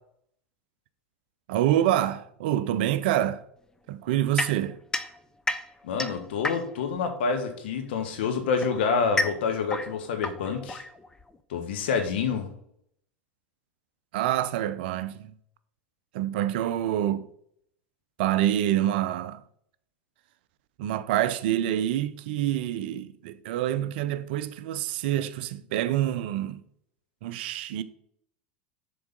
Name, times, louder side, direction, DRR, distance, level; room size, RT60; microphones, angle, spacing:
voice 1, 1.5-3.4 3.9-4.8 14.1-15.3 16.1-17.3 18.2-19.4 20.8-26.6 27.2-27.8, right 12 dB, 60° right, 0.5 m, -26 dB
sound 1, 4.4-7.0 8.0-11.4, left 2 dB, 10° left, 0.6 m, -32 dB
voice 2, 5.8-10.8 11.5-12.5, left 5 dB, 65° left, 1.2 m, -27 dB
7.0 x 3.8 x 5.2 m
figure-of-eight pair, 85°, 6 cm